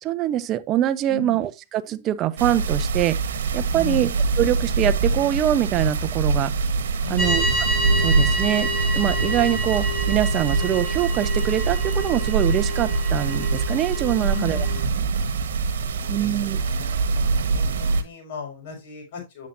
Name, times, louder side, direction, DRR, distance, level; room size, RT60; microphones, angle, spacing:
voice 1, 0.0-3.2 3.5-4.1 4.4-6.5 7.1-7.4 8.0-8.7 8.9-14.6 16.1-16.6, right 12 dB, 30° right, 0.9 m, -24 dB
voice 2, 1.1-1.4 3.7-4.1 7.0-7.5 14.2-14.8 15.8-17.2 17.5-19.5, left 4 dB, 55° left, 5.5 m, -37 dB
sound 1, 2.4-18.0, right 4 dB, 80° right, 1.4 m, -24 dB
sound 2, 7.2-14.8, right 1 dB, 15° left, 4.1 m, -29 dB
9.2 x 7.4 x 2.7 m
hypercardioid pair, 130°, 0 cm